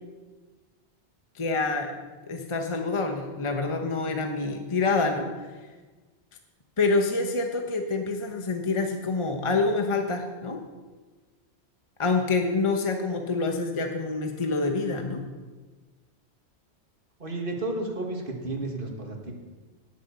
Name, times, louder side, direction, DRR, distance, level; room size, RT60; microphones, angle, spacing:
voice 1, 1.4-1.9 2.3-5.5 6.8-10.6 12.0-15.2, left 3 dB, 30° left, 4 dB, 1.0 m, -27 dB
voice 2, 17.2-19.3, right 2 dB, 50° right, 1 dB, 2.0 m, -32 dB
18.0 x 6.7 x 6.9 m, 1.3 s
omnidirectional pair, 1.2 m